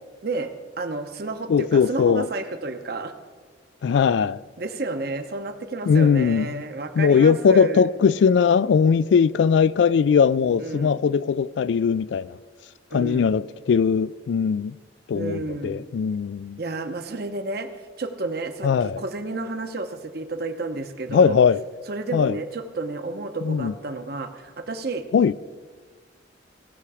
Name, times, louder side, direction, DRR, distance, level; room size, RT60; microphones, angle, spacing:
voice 1, 0.8-3.1 4.6-7.9 10.6-11.0 12.9-13.4 15.1-15.8 16.6-17.7 18.0-21.4 21.9-25.0, right 3 dB, 55° right, 0.9 m, -31 dB
voice 2, 1.5-2.3 3.8-4.4 5.9-6.6 7.0-12.4 12.9-14.8 15.1-16.6 18.6-19.0 21.1-21.6 22.1-22.4 23.4-23.7 25.1-25.3, left 6 dB, 70° left, 0.3 m, -20 dB
17.5 x 7.0 x 4.9 m
head